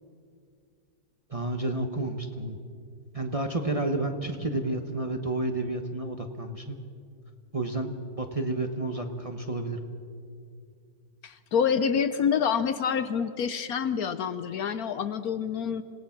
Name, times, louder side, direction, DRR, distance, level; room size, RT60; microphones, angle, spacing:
voice 1, 1.3-2.6 3.1-6.8 7.5-7.9 8.2-9.8, right 2 dB, 25° right, 4 dB, 1.0 m, -30 dB
voice 2, 11.2-15.8, left 7 dB, 65° left, 12 dB, 1.1 m, -27 dB
27.0 x 18.0 x 5.9 m, 2.3 s
omnidirectional pair, 1.8 m